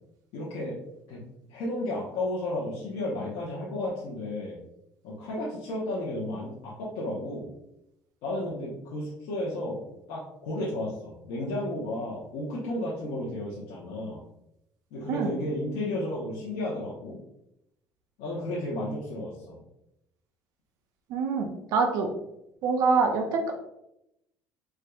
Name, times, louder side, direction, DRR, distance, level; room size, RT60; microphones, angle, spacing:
voice 1, 0.3-0.8 1.1-1.2 1.5-4.6 5.0-7.5 8.2-14.2 14.9-17.2 18.2-19.6, left 1 dB, 80° left, -7 dB, 0.9 m, -33 dB
voice 2, 21.1-22.1 22.6-23.5, right 4 dB, 70° right, 2 dB, 0.5 m, -25 dB
4.5 x 2.5 x 2.3 m, 0.82 s
cardioid pair, 130°, 6 cm